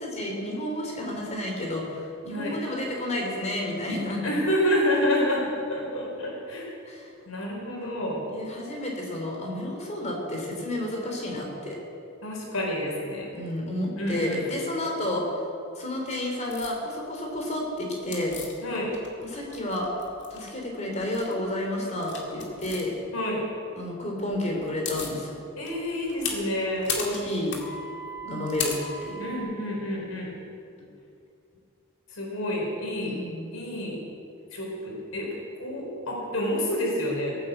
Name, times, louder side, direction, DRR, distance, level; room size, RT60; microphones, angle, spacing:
voice 1, 0.0-4.4 6.8-7.1 8.3-11.8 13.3-15.3 15.8-18.4 19.2-19.9 20.3-22.9 23.8-25.4 27.0-27.6 28.2-28.7 29.0-29.3 33.0-33.5, left 1 dB, 35° left, 0 dB, 3.4 m, -31 dB
voice 2, 4.2-6.7 7.3-8.3 12.2-13.3 14.0-14.5 18.6-18.9 23.1-23.4 25.6-26.9 29.2-30.3 32.1-33.2 33.5-34.0 34.5-37.4, left 1 dB, 85° left, -2 dB, 4.5 m, -28 dB
sound 1, 16.5-16.7 18.1-19.2 19.5-20.4 21.0-21.3 22.0-22.8 24.3-24.4 24.6-25.2 25.7-29.4, left 4 dB, 55° left, 2.4 m, -35 dB
18.5 x 8.8 x 7.9 m, 2.6 s
head